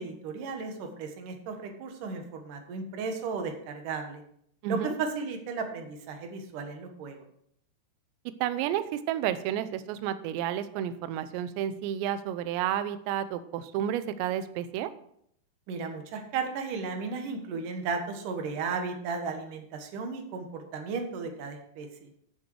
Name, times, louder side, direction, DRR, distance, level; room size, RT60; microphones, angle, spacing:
voice 1, 0.0-4.2 4.7-7.2 15.7-22.1, right 4 dB, 65° right, 5 dB, 2.3 m, -35 dB
voice 2, 4.6-4.9 8.4-14.9, right 10 dB, 80° right, 12 dB, 2.8 m, -31 dB
14.0 x 6.8 x 4.7 m, 0.69 s
omnidirectional pair, 5.5 m